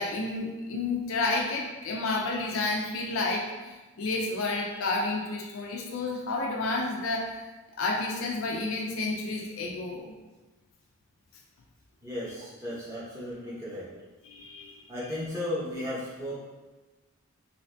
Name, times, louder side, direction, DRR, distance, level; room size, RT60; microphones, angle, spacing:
voice 1, 0.0-7.3 7.8-10.1 14.2-14.7, left 3 dB, 65° left, -1 dB, 0.4 m, -30 dB
voice 2, 12.0-13.9 14.9-16.3, left 1 dB, 15° right, -9 dB, 0.7 m, -35 dB
3.2 x 2.7 x 3.2 m, 1.2 s
head